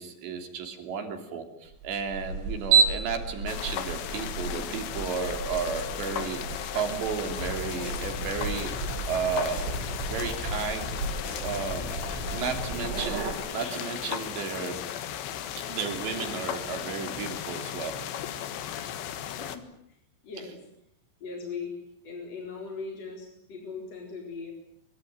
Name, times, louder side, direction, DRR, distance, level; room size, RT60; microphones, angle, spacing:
voice 1, 0.0-6.4 6.7-8.7 9.0-9.6 10.1-10.9 11.4-12.0 12.3-13.2 13.5-14.8 15.6-17.9, right 6 dB, 60° right, 6 dB, 5.2 m, -33 dB
sound 1, 1.7-13.3, right 5 dB, 90° right, 6.7 m, -32 dB
sound 2, 3.5-19.6, left 10 dB, 65° left, 3.5 m, -36 dB
sound 3, 7.4-14.2, left 2 dB, 85° left, 9.2 m, -40 dB
voice 2, 19.4-20.0 20.2-20.6 21.2-21.7 22.0-24.5, left 5 dB, 35° left, 1 dB, 4.7 m, -39 dB
25.5 x 23.5 x 9.5 m, 0.73 s
omnidirectional pair, 5.7 m